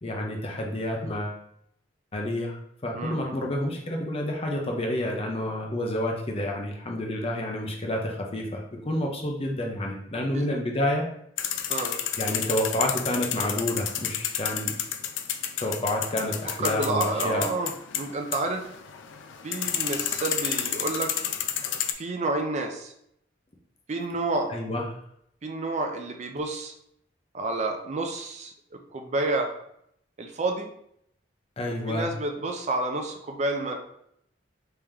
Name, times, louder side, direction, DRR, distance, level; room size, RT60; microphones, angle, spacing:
voice 1, 0.0-1.4 2.1-2.6 2.8-11.1 12.2-14.7 15.6-17.4 24.5-24.8 31.6-32.1, left 1 dB, 30° left, 1 dB, 0.6 m, -29 dB
voice 2, 2.9-3.4 10.3-10.5 11.7-11.9 16.6-18.6 19.4-21.1 22.0-22.9 23.9-24.6 25.4-26.7 27.3-28.5 28.9-29.5 30.2-30.7 31.9-33.8, right 2 dB, 40° right, 4 dB, 0.4 m, -29 dB
sound 1, 11.4-21.9, left 9 dB, 75° left, 0.4 m, -31 dB
3.3 x 2.9 x 3.5 m, 0.72 s
head